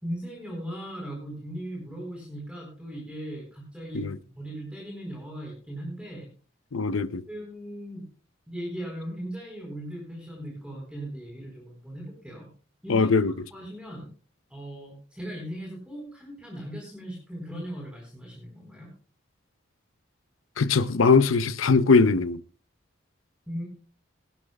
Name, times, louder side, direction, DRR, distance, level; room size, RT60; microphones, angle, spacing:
voice 1, 0.0-6.3 7.3-8.0 8.5-12.5 12.8-13.1 13.5-14.1 14.5-18.9 23.5-23.6, equal, 5° right, 4.3 m, -38 dB
voice 2, 6.7-7.2 12.9-13.3 20.6-22.4, left 4 dB, 85° left, 0.7 m, -21 dB
21.0 x 11.5 x 2.3 m
head